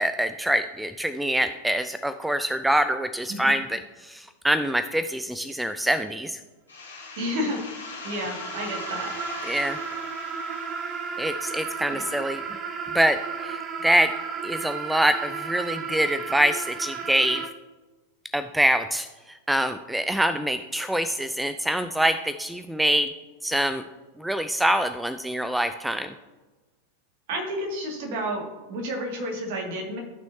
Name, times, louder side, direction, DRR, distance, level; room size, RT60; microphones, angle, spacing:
voice 1, 0.0-6.4 9.5-9.8 11.2-12.4 12.9-14.1 14.4-17.4 18.3-23.1 23.4-23.8 24.2-26.1, right 1 dB, 5° right, 11 dB, 0.3 m, -25 dB
sound 1, 6.7-12.2, left 4 dB, 75° left, 3.0 m, -41 dB
voice 2, 7.2-7.6 8.0-9.1 11.9-12.0 27.3-28.4 28.7-30.0, equal, 50° right, 0 dB, 2.2 m, -30 dB
sound 2, 7.4-17.5, right 5 dB, 30° right, 0.7 m, -34 dB
14.0 x 6.2 x 2.8 m, 1.2 s
figure-of-eight pair, 90°, 0 cm